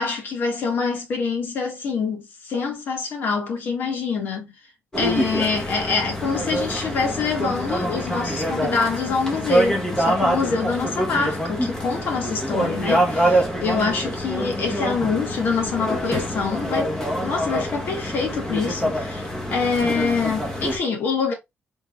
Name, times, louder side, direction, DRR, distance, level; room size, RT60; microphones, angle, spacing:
voice 1, 0.0-4.5 5.0-17.0 17.2-21.3, left 4 dB, 65° left, 1.9 m, -25 dB
sound 1, 4.9-20.8, equal, 15° left, 1.5 m, -25 dB
3.8 x 3.8 x 2.7 m
cardioid pair, 130°, 4 cm